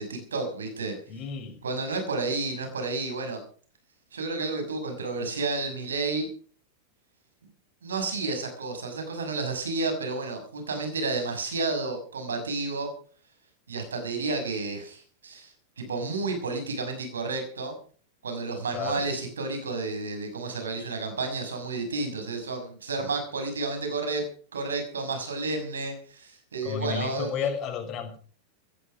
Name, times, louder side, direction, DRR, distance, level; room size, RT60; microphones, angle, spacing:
voice 1, 0.0-0.9 1.6-3.4 4.1-6.3 7.8-12.9 13.7-17.7 18.2-24.2 24.5-27.3, right 3 dB, 70° right, 6 dB, 6.2 m, -31 dB
voice 2, 1.1-1.6 18.7-19.1 23.0-23.1 26.6-28.2, left 6 dB, 35° left, 6 dB, 5.5 m, -32 dB
17.0 x 13.5 x 5.3 m, 0.43 s
figure-of-eight pair, 90°, 0 cm